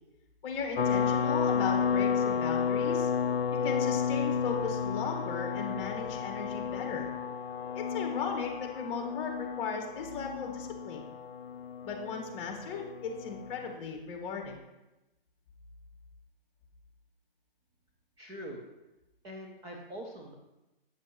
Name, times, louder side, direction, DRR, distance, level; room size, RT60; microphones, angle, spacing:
voice 1, 0.4-3.1 3.6-7.1 7.7-11.0 11.8-14.6, left 5 dB, 20° left, 2 dB, 1.6 m, -37 dB
sound 1, 0.8-13.7, left 7 dB, 90° left, 0.6 m, -32 dB
voice 2, 18.2-18.6 19.2-20.3, equal, 15° right, -2 dB, 0.7 m, -43 dB
8.4 x 7.4 x 3.1 m, 1.0 s
hypercardioid pair, 145°, 29 cm